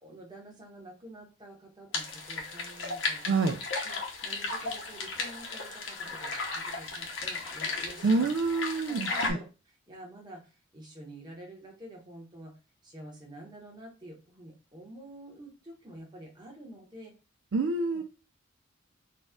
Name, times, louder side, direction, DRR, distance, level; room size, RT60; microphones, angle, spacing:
voice 1, 0.0-3.5 3.8-8.3 8.7-12.5 12.8-17.1 17.9-18.0, right 1 dB, 20° right, -1 dB, 1.1 m, -48 dB
sound 1, 1.9-9.3, left 3 dB, 65° left, 0.9 m, -35 dB
voice 2, 3.2-3.6 8.0-9.4 17.5-18.0, right 3 dB, 60° right, 4 dB, 0.4 m, -27 dB
4.1 x 2.4 x 3.5 m, 0.32 s
head